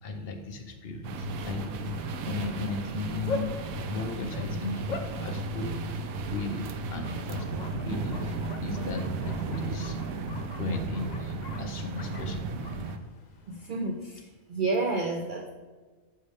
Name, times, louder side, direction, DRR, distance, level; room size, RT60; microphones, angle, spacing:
voice 1, 0.0-5.8 6.3-10.2 10.5-12.6, left 3 dB, 50° left, 4 dB, 0.9 m, -36 dB
sound 1, 1.0-13.0, right 3 dB, 80° right, 1.0 m, -34 dB
Bark, 2.5-13.8, left 3 dB, 80° left, 0.4 m, -43 dB
voice 2, 13.5-15.5, right 3 dB, 60° right, 3 dB, 0.5 m, -30 dB
6.5 x 5.1 x 3.5 m, 1.4 s
omnidirectional pair, 1.5 m